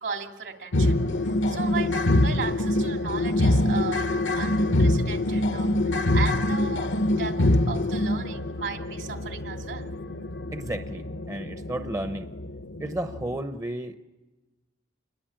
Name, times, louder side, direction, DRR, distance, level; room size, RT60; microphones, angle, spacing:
voice 1, 0.0-6.9 7.2-9.9, right 5 dB, 65° right, 4 dB, 2.9 m, -36 dB
sound 1, 0.7-13.4, left 1 dB, 70° left, 0.9 m, -25 dB
voice 2, 10.5-12.3 12.8-14.0, right 1 dB, 15° right, 8 dB, 0.8 m, -33 dB
28.5 x 22.0 x 8.8 m, 1.2 s
head